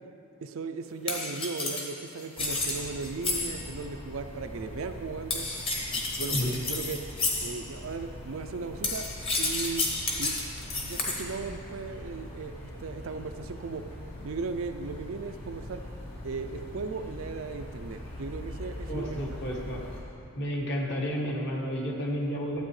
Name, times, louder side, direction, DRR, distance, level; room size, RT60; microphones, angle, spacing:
voice 1, 0.4-5.5 5.9-7.0 7.4-9.1 9.4-9.9 10.2-10.4 10.7-12.5 12.8-13.8 14.2-15.8 16.2-19.3, right 4 dB, 65° right, 8 dB, 0.4 m, -37 dB
sound 1, 1.1-3.7 5.3-7.6 8.8-11.2, left 3 dB, 25° left, 1.0 m, -31 dB
sound 2, 2.4-20.0, left 1 dB, 70° left, 1.9 m, -42 dB
voice 2, 18.9-19.8 20.4-22.6, equal, 50° left, -2 dB, 1.2 m, -31 dB
12.5 x 8.1 x 3.2 m, 2.6 s
head